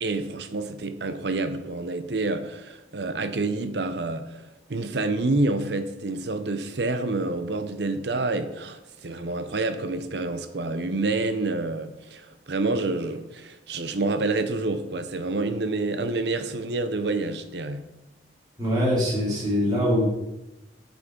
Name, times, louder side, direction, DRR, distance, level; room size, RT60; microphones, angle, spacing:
voice 1, 0.0-4.4 4.7-17.8, right 2 dB, 70° right, 10 dB, 0.7 m, -28 dB
voice 2, 18.6-20.1, equal, 25° right, -8 dB, 2.7 m, -23 dB
8.1 x 5.6 x 4.4 m, 0.99 s
head